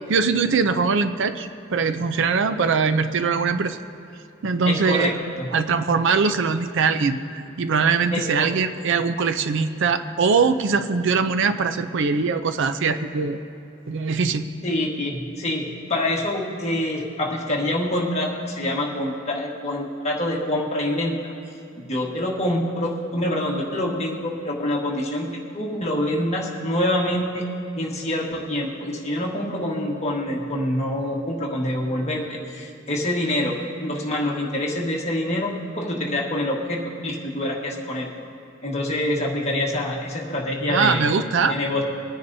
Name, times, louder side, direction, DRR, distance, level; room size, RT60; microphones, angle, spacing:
voice 1, 0.1-3.8 4.4-5.1 5.5-13.4 13.9-14.4 40.7-41.6, right 5 dB, 60° right, 10 dB, 0.5 m, -22 dB
voice 2, 4.7-5.5 6.2-6.3 8.1-8.5 14.6-21.2 21.7-27.4 27.8-38.1 38.6-41.0 41.5-41.8, left 1 dB, 30° left, -2 dB, 1.5 m, -26 dB
21.5 x 9.8 x 2.7 m, 2.9 s
head